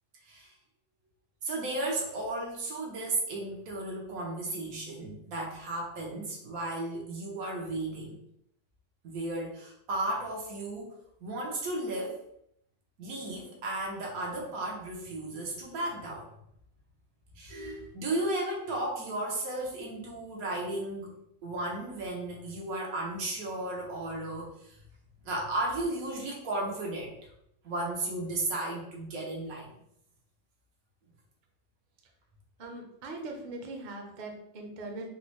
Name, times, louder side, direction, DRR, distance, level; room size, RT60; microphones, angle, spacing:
voice 1, 1.4-8.2 9.0-12.2 13.0-16.3 17.3-21.1 21.4-24.7 25.2-27.1 27.6-29.7, right 2 dB, 90° right, -2 dB, 1.3 m, -34 dB
voice 2, 32.6-35.1, right 2 dB, 50° right, 2 dB, 0.5 m, -41 dB
4.1 x 2.0 x 2.9 m, 0.75 s
omnidirectional pair, 1.5 m